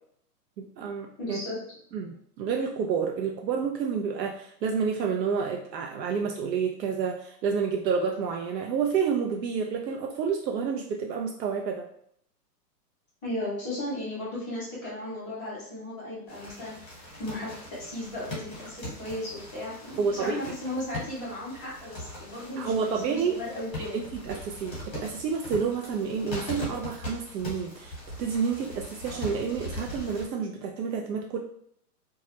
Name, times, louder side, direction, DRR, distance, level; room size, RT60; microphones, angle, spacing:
voice 1, 0.6-1.4 1.9-11.9 20.0-20.4 22.6-23.4 23.9-31.4, right 6 dB, 85° right, 1 dB, 0.5 m, -29 dB
voice 2, 1.2-1.6 13.2-24.0, left 1 dB, 5° right, -22 dB, 0.3 m, -35 dB
sound 1, 16.3-30.3, left 1 dB, 10° left, 0.9 m, -40 dB
2.3 x 2.0 x 2.7 m, 0.68 s
hypercardioid pair, 145°, 49 cm